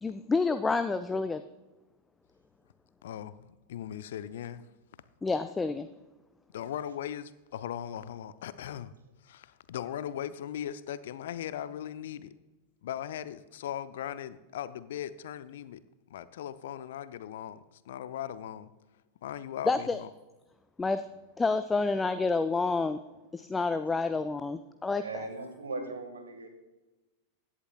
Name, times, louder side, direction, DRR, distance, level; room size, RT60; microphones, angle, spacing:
voice 1, 0.0-1.4 5.2-5.9 19.7-20.0 20.8-21.0 21.4-23.0 23.3-25.2, left 3 dB, 10° left, 11 dB, 0.4 m, -29 dB
voice 2, 3.0-4.6 6.5-8.9 9.2-12.3 12.8-15.8 16.1-18.7 19.2-20.1, left 10 dB, 60° left, 15 dB, 0.6 m, -39 dB
voice 3, 24.9-26.5, right 3 dB, 70° right, 7 dB, 1.7 m, -39 dB
16.0 x 11.0 x 2.3 m, 1.1 s
figure-of-eight pair, 90°, 0 cm